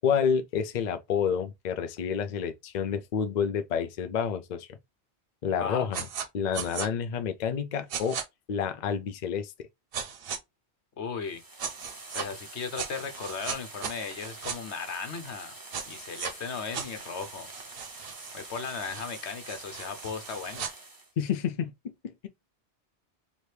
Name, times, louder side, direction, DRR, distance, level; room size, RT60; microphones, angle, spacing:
voice 1, 0.0-4.8 5.4-6.1 6.3-8.2 8.5-9.5 21.2-22.3, left 7 dB, 50° left, 0.6 m, -29 dB
sound 1, 5.9-6.3 6.5-6.9 7.9-8.2 9.9-10.4 11.6-12.3 12.7-14.6 15.7-16.3 16.7-20.7, right 7 dB, 60° right, 0.9 m, -37 dB
voice 2, 11.0-11.4 12.1-15.5 15.9-17.5 18.3-20.7, left 5 dB, 85° left, 1.2 m, -36 dB
sound 2, 11.2-21.1, right 2 dB, 20° right, 0.9 m, -46 dB
3.3 x 2.7 x 4.4 m
omnidirectional pair, 1.1 m